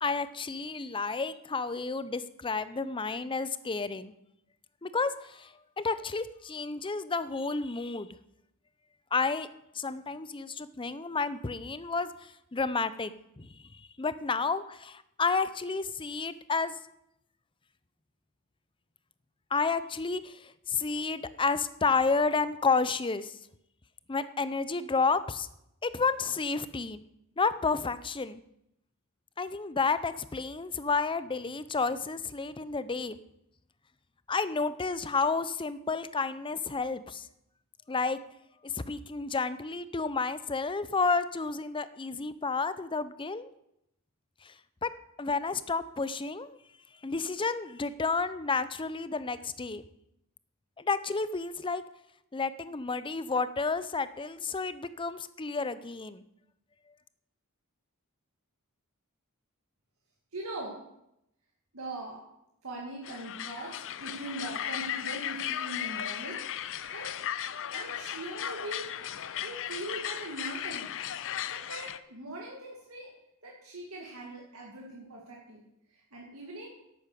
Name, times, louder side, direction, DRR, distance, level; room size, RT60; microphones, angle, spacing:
voice 1, 0.0-4.1 4.8-8.2 9.1-9.5 9.7-13.5 13.8-16.7 19.5-23.4 24.1-25.5 25.8-27.0 27.4-28.4 29.4-33.2 34.3-37.3 37.9-38.2 38.6-43.5 44.4-44.5 44.8-44.9 45.2-46.6 47.0-49.8 50.8-51.8 52.3-56.2, left 4 dB, 25° left, 14 dB, 0.6 m, -31 dB
voice 2, 60.3-60.8 61.7-62.2 62.6-67.2 67.7-68.9 69.4-70.9 71.5-73.1 73.4-76.7, right 1 dB, 70° right, -2 dB, 2.2 m, -41 dB
sound 1, 63.0-72.0, left 10 dB, 60° left, 0.6 m, -36 dB
11.5 x 8.6 x 6.8 m, 0.81 s
head